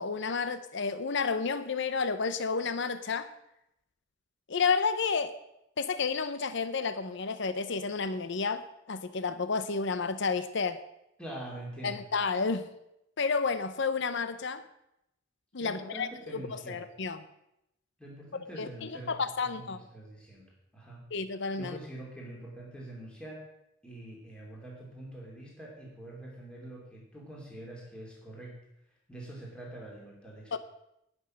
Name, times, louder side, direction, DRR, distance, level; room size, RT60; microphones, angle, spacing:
voice 1, 0.0-3.3 4.5-5.3 5.8-10.8 11.8-12.7 13.2-14.6 15.5-17.2 18.6-19.8 21.1-21.8 30.5-30.6, left 5 dB, 60° left, 12 dB, 0.7 m, -31 dB
voice 2, 11.2-12.0 15.6-16.8 18.0-21.0 21.6-23.4 23.8-28.6 29.1-30.6, right 1 dB, 5° left, -3 dB, 2.8 m, -45 dB
18.0 x 6.2 x 6.4 m, 0.83 s
head